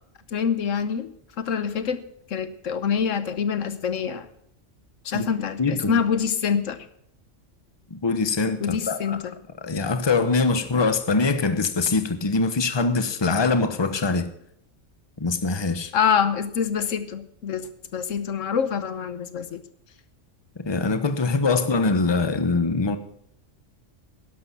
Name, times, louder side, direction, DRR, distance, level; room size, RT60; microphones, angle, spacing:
voice 1, 0.3-1.1 1.4-2.0 2.3-4.3 5.0-6.9 8.6-9.3 15.9-19.6, left 7 dB, 85° left, 1.3 m, -25 dB
voice 2, 5.6-6.0 7.9-9.2 9.6-14.3 15.2-15.9 20.6-23.0, left 3 dB, 25° left, 0.9 m, -23 dB
12.5 x 11.0 x 5.7 m
omnidirectional pair, 1.3 m